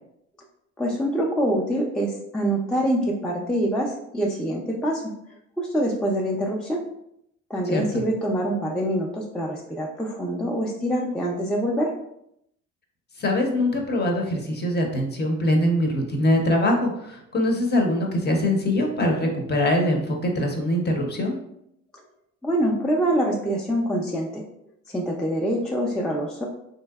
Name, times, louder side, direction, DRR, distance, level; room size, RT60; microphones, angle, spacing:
voice 1, 0.8-5.0 5.6-6.8 7.5-11.9 22.4-24.4 24.9-26.5, right 1 dB, 5° left, -2 dB, 0.4 m, -25 dB
voice 2, 7.7-8.0 13.2-21.4, left 1 dB, 35° left, 1 dB, 0.7 m, -23 dB
3.1 x 2.7 x 2.3 m, 0.77 s
cardioid pair, 80°, 31 cm